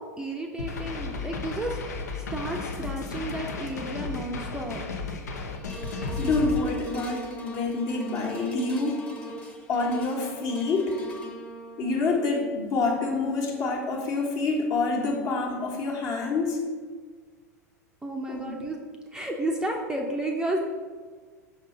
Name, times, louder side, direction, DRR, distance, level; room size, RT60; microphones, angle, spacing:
voice 1, 0.0-4.9 18.0-18.8 19.1-20.6, right 1 dB, 10° right, 1 dB, 0.6 m, -32 dB
sound 1, 0.6-6.6, left 3 dB, 70° left, 0.7 m, -34 dB
sound 2, 5.6-16.0 16.6-16.7, right 1 dB, 10° left, 1.0 m, -42 dB
voice 2, 6.2-9.0 9.7-10.9 11.8-16.6 18.3-18.5, left 3 dB, 40° left, 0 dB, 1.3 m, -27 dB
5.7 x 3.7 x 5.4 m, 1.5 s
figure-of-eight pair, 85°, 9 cm